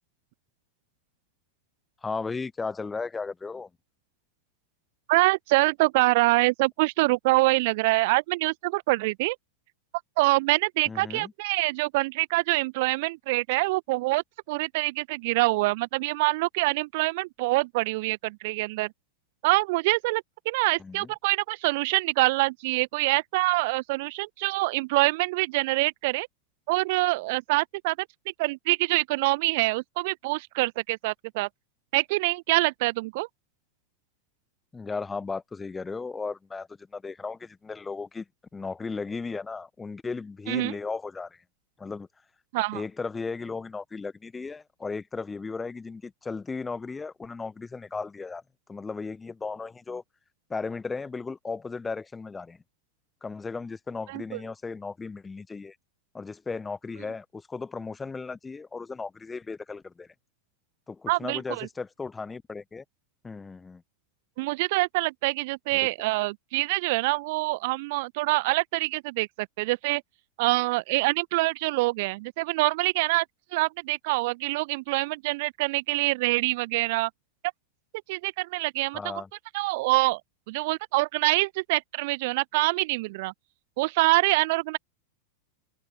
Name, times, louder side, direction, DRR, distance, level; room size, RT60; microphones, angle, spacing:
voice 1, 2.0-3.7 10.9-11.3 20.8-21.1 34.7-38.2 38.5-41.4 41.8-42.1 42.7-48.4 48.7-50.0 50.5-52.6 53.2-55.7 56.1-60.1 60.9-62.8 63.2-63.8 65.7-65.9 78.9-79.3, left 4 dB, 15° left, 1.4 m, -35 dB
voice 2, 5.1-9.3 10.2-18.9 19.4-26.3 26.7-28.0 28.4-31.5 31.9-33.3 40.5-40.7 42.5-42.8 54.1-54.4 61.1-61.7 64.4-70.0 70.4-73.2 73.5-77.1 78.1-79.1 79.5-80.2 80.5-83.3 83.8-84.8, right 23 dB, 50° right, 1.3 m, -25 dB
figure-of-eight pair, 90°, 0 cm